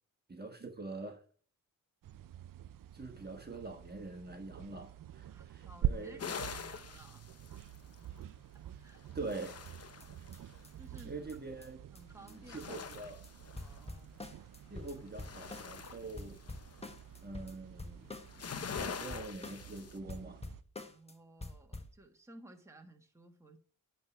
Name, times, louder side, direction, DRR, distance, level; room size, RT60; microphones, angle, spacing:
voice 1, 0.3-1.2 2.9-6.4 9.1-9.7 11.0-11.8 12.2-13.2 14.7-16.4 17.2-18.1 18.8-20.4, right 3 dB, 25° right, 1.4 m, -44 dB
sound 1, 2.0-20.6, right 11 dB, 65° right, 0.6 m, -46 dB
voice 2, 5.3-7.7 8.5-9.0 10.8-11.2 11.9-13.1 13.5-14.1 20.8-23.6, right 2 dB, 10° right, 1.6 m, -57 dB
sound 2, 6.2-8.2 8.9-10.6 12.3-14.2 14.7-17.0 18.2-20.0, left 6 dB, 40° left, 0.8 m, -45 dB
sound 3, 9.7-9.8 10.0-10.1 10.3-10.4 10.6-10.7 11.0-11.1 11.3-11.4 11.6-11.7 11.9-12.0 12.3-12.4 12.6-13.0 13.2-13.3 13.6-15.9 16.2-18.5 18.8-19.8 20.1-21.1 21.4-22.0, left 2 dB, 15° left, 1.3 m, -47 dB
10.5 x 3.8 x 7.1 m
cardioid pair, 65°, 36 cm